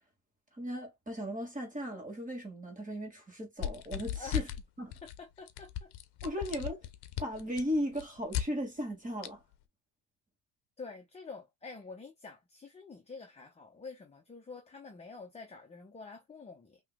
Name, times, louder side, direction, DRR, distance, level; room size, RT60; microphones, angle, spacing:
voice 1, 0.5-4.5 4.8-4.9 6.2-6.8 7.2-9.4, equal, 15° right, 2.2 m, -36 dB
sound 1, 3.6-4.6 4.9-5.2 5.5-8.5 9.2-9.3, left 11 dB, 60° left, 0.8 m, -36 dB
voice 2, 4.2-4.5 5.0-5.9 10.8-16.8, left 4 dB, 15° left, 0.8 m, -48 dB
5.4 x 3.1 x 2.3 m
cardioid pair, 145°, 45 cm